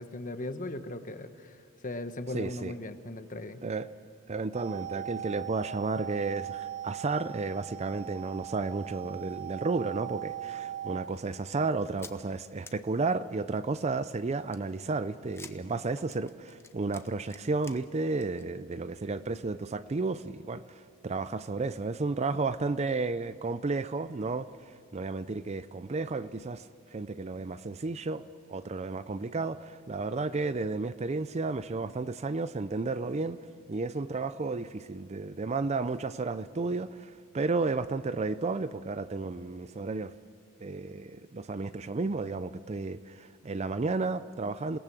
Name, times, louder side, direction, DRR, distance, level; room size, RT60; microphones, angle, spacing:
voice 1, 0.0-1.6 1.8-3.6, left 2 dB, 35° left, 1.1 m, -38 dB
voice 2, 2.3-2.7 3.6-3.9 4.3-28.2 28.5-33.4 33.7-40.1 40.6-44.8, right 3 dB, 30° right, 0.4 m, -32 dB
sound 1, 4.5-11.0, right 11 dB, 45° right, 2.9 m, -39 dB
sound 2, 12.0-12.2 12.6-12.7 14.5-17.8 18.1-18.4 18.8-18.9 19.2-19.3, left 4 dB, 10° left, 0.8 m, -49 dB
28.0 x 18.0 x 6.1 m
head